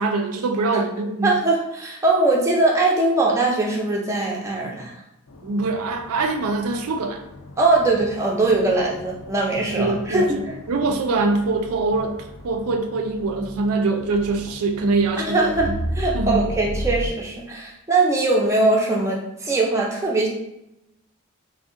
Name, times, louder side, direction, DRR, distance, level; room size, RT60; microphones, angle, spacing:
voice 1, 0.0-1.3 5.4-7.2 9.7-15.7 16.1-16.4, right 3 dB, 80° right, 5 dB, 0.4 m, -23 dB
voice 2, 1.2-5.0 7.6-10.6 15.2-15.7 16.0-20.3, right 2 dB, 15° right, -2 dB, 0.3 m, -21 dB
sound 1, 5.3-17.1, equal, 75° left, 0.5 m, -35 dB
3.5 x 2.0 x 2.5 m, 0.85 s
head